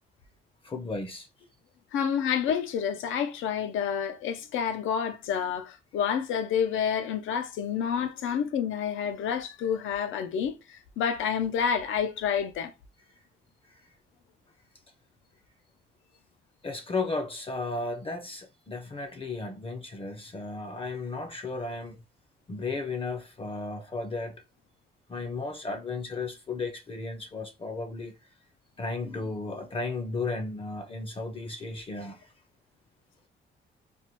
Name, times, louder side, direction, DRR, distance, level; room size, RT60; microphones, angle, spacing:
voice 1, 0.6-1.3 16.6-22.0 22.5-24.4 25.1-28.1 28.8-32.2, left 3 dB, 25° left, 0.5 m, -34 dB
voice 2, 1.9-12.7, left 7 dB, 80° left, 0.6 m, -29 dB
3.4 x 2.1 x 3.0 m
cardioid pair, 90°, 20 cm